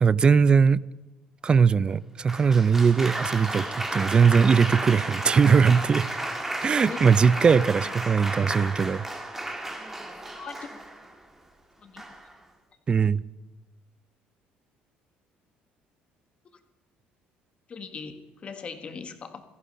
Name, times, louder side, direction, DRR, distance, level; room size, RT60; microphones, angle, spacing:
voice 1, 0.0-0.8 1.4-6.1 6.6-9.0 12.9-13.2, right 6 dB, 30° right, 0.4 m, -20 dB
Applause, 2.3-11.1 12.0-12.4, right 1 dB, 10° right, 1.9 m, -33 dB
voice 2, 10.3-10.7 11.8-12.0 17.7-19.4, left 5 dB, 35° left, 1.6 m, -40 dB
17.0 x 14.0 x 5.6 m
cardioid pair, 125°, 3 cm